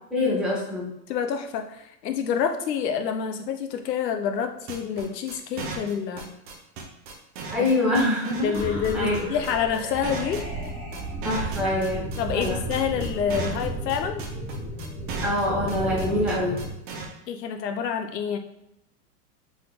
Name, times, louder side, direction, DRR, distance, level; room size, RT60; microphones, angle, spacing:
voice 1, 0.1-0.9 7.5-8.4 8.9-9.1 11.2-12.0 12.3-12.5 15.2-16.6, left 1 dB, ahead, -7 dB, 1.4 m, -24 dB
voice 2, 1.1-6.3 7.6-7.7 8.4-10.5 12.2-14.2 17.3-18.4, left 7 dB, 80° left, 6 dB, 0.8 m, -28 dB
sound 1, 4.7-17.1, right 4 dB, 20° right, 0.4 m, -36 dB
sound 2, 8.5-16.7, right 1 dB, 15° left, 1.4 m, -33 dB
4.2 x 3.6 x 3.2 m, 0.83 s
hypercardioid pair, 135°, 49 cm